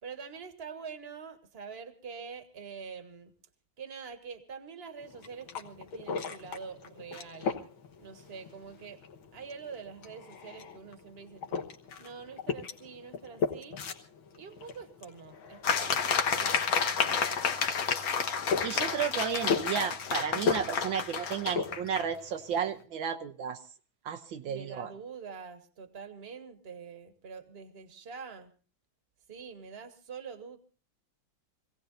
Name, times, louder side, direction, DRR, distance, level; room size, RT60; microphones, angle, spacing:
voice 1, 0.0-3.3 3.8-7.6 8.0-9.0 9.3-11.6 12.0-13.8 14.4-17.2 24.4-28.5 29.3-30.6, right 6 dB, 35° right, 8 dB, 1.6 m, -45 dB
sound 1, 5.0-22.8, left 5 dB, 80° left, 2.2 m, -38 dB
sound 2, 15.6-22.1, left 6 dB, 55° left, 1.4 m, -30 dB
voice 2, 18.6-23.6 24.0-24.9, right 7 dB, 75° right, 7 dB, 1.6 m, -33 dB
25.5 x 17.5 x 2.6 m, 0.38 s
omnidirectional pair, 2.2 m